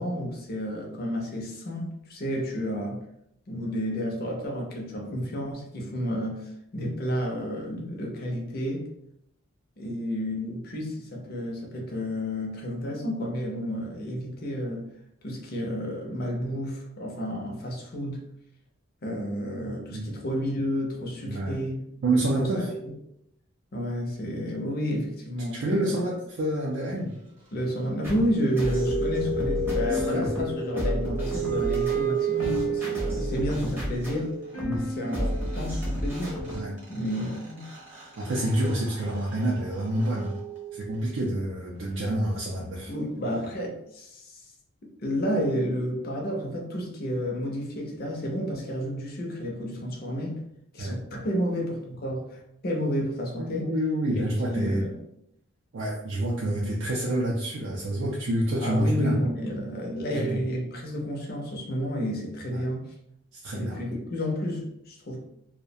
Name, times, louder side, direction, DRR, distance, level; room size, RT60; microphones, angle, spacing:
voice 1, 0.0-3.0 3.5-8.9 9.8-14.9 15.2-18.3 19.0-21.8 22.4-22.9 23.7-26.0 27.5-34.4 34.9-36.6 36.9-37.7 42.9-44.4 45.0-50.4 50.7-53.7 54.2-55.0 58.6-62.9 63.5-65.2, equal, 45° left, -1 dB, 0.5 m, -31 dB
voice 2, 21.3-21.6 22.0-22.7 25.5-27.1 29.2-29.3 29.9-30.3 34.6-34.8 36.5-36.8 38.2-40.4 40.7-42.9 50.8-51.0 53.4-54.8 55.7-59.2 60.1-60.4 63.3-63.8, right 1 dB, 65° right, -4 dB, 0.4 m, -28 dB
sound 1, 28.0-36.7, equal, 10° right, 0.6 m, -32 dB
sound 2, 28.2-33.6 35.5-35.6 35.7-41.2, right 4 dB, 35° right, 0.9 m, -32 dB
sound 3, 29.8-36.9, left 3 dB, 80° left, 0.7 m, -39 dB
2.3 x 2.1 x 2.6 m, 0.76 s
head